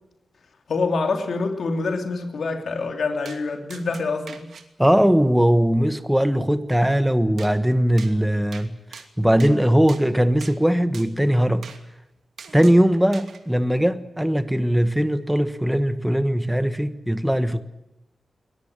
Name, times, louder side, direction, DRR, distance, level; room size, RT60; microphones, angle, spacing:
voice 1, 0.7-4.5, left 3 dB, 65° left, 3.1 m, -26 dB
sound 1, 3.3-3.4 3.7-4.7 7.4-7.5 8.0-8.1 8.5-8.7 8.9-9.6 9.9-10.0 10.4-10.6 10.9-11.1 11.6-11.8 12.4-12.8 13.1-13.4, right 6 dB, 80° right, 2.7 m, -42 dB
voice 2, 4.8-8.8 9.2-11.7 12.5-17.6, equal, 5° right, 1.4 m, -20 dB
22.0 x 20.5 x 9.0 m
wide cardioid pair, 140°, 0 cm